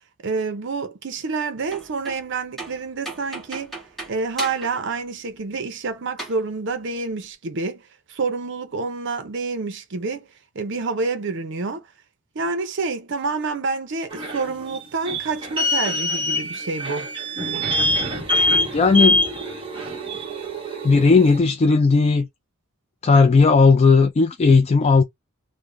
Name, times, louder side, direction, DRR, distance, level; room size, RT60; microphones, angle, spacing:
voice 1, 0.2-3.8 4.1-7.8 8.1-10.3 10.5-11.8 12.3-17.1, right 4 dB, 60° right, 0.6 m, -28 dB
sound 1, 1.6-2.3 2.6-4.9 5.2-5.3 6.2-6.4, right 2 dB, ahead, 1.2 m, -36 dB
sound 2, 14.1-21.4, left 1 dB, 25° right, 1.0 m, -24 dB
voice 2, 18.7-19.2 20.8-22.3 23.0-25.0, left 4 dB, 30° left, 0.3 m, -15 dB
3.4 x 2.0 x 3.7 m
head